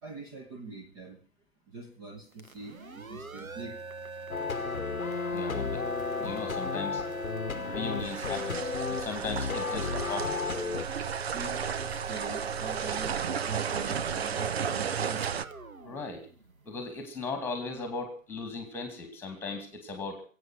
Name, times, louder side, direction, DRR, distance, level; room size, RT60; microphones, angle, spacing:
voice 1, 0.0-1.2 1.7-3.8 11.3-13.1 13.5-15.3, right 3 dB, 25° right, 4 dB, 1.5 m, -43 dB
sound 1, 2.3-16.9, right 3 dB, 85° right, 1.5 m, -42 dB
sound 2, 4.3-10.9, left 5 dB, 90° left, 1.0 m, -33 dB
voice 2, 5.3-5.8 6.2-7.0 7.6-10.5 15.8-16.2 16.6-20.2, left 4 dB, 5° left, 6 dB, 2.5 m, -37 dB
sound 3, 8.0-15.4, right 7 dB, 50° right, 0.7 m, -33 dB
22.0 x 8.7 x 6.0 m, 0.41 s
figure-of-eight pair, 140°, 41 cm